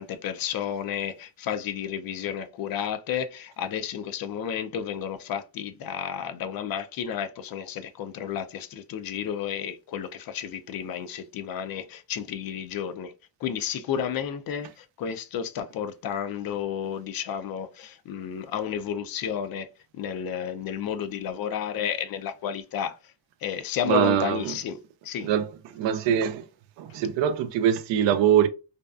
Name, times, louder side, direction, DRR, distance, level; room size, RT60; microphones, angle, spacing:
voice 1, 0.0-13.1 13.4-19.7 19.9-23.0 23.4-24.8 25.0-25.3, left 8 dB, 55° left, 0.5 m, -32 dB
voice 2, 23.9-24.5 25.2-25.5 25.7-26.5 26.8-28.5, right 9 dB, 85° right, 0.5 m, -23 dB
2.6 x 2.3 x 2.3 m
cardioid pair, 105°, 43 cm